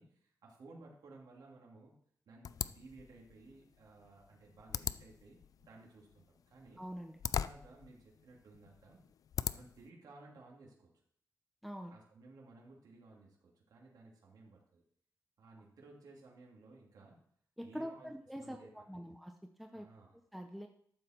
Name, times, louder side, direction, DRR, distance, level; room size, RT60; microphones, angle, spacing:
voice 1, 0.0-1.9 2.3-6.8 7.4-9.0 9.5-10.9 11.9-14.8 15.4-17.2 17.6-18.1 18.4-19.0 19.7-20.2, right 3 dB, 80° right, -2 dB, 2.8 m, -57 dB
sound 1, 2.4-9.9, left 8 dB, 65° left, 0.4 m, -42 dB
voice 2, 6.8-7.1 11.6-11.9 17.6-19.3 19.6-19.9 20.3-20.7, equal, ahead, 4 dB, 0.7 m, -44 dB
12.5 x 7.3 x 4.4 m, 0.64 s
wide cardioid pair, 125°, 6 cm